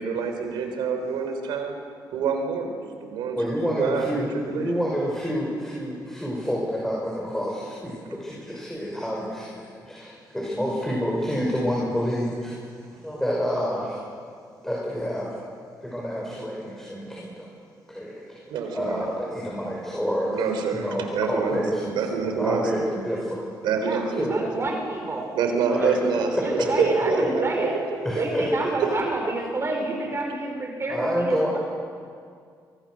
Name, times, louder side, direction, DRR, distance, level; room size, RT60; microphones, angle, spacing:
voice 1, 0.0-1.7 2.1-3.4 3.6-4.7 18.5-19.0 20.3-22.9 23.6-24.5 25.4-27.8 28.1-28.3, right 5 dB, 90° right, 5 dB, 3.9 m, -27 dB
voice 2, 3.3-12.5 12.9-14.0 14.6-15.4 15.8-17.5 17.9-18.4 18.7-20.4 20.7-21.9 22.2-23.5 24.2-24.5 25.7-25.9 26.3-26.4 26.7-26.8 27.1-27.3 28.0-28.4 30.9-31.5, equal, 5° left, -4 dB, 6.0 m, -28 dB
voice 3, 23.8-25.3 25.8-25.9 26.2-27.8 28.2-31.6, right 2 dB, 35° right, 2 dB, 4.4 m, -29 dB
25.0 x 23.5 x 6.5 m, 2.2 s
cardioid pair, 90°, 8 cm